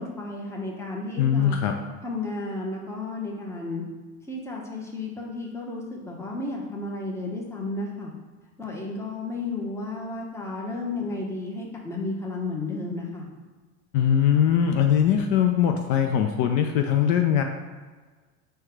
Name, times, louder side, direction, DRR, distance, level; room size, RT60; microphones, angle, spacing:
voice 1, 0.0-1.6 2.0-3.8 4.3-8.1 8.6-13.3, left 2 dB, 5° left, -2 dB, 0.7 m, -33 dB
voice 2, 1.2-1.8 13.9-17.4, left 9 dB, 55° left, 5 dB, 0.5 m, -21 dB
4.5 x 2.3 x 4.6 m, 1.4 s
supercardioid pair, 100°, 41 cm